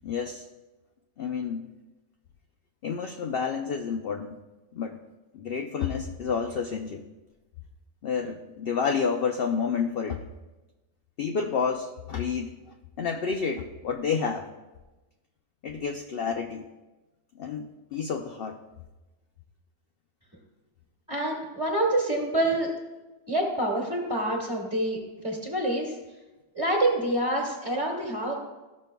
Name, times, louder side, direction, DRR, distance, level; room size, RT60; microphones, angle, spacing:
voice 1, 0.0-0.4 1.2-1.7 2.8-4.4 4.7-5.0 5.3-7.0 8.0-10.2 11.2-12.6 13.0-14.5 15.6-16.6 17.4-18.6, left 6 dB, 80° left, 3 dB, 0.5 m, -29 dB
voice 2, 21.1-22.7 23.3-25.9 26.5-28.3, right 1 dB, 5° right, -4 dB, 1.4 m, -27 dB
13.5 x 6.3 x 2.2 m, 1.1 s
omnidirectional pair, 1.6 m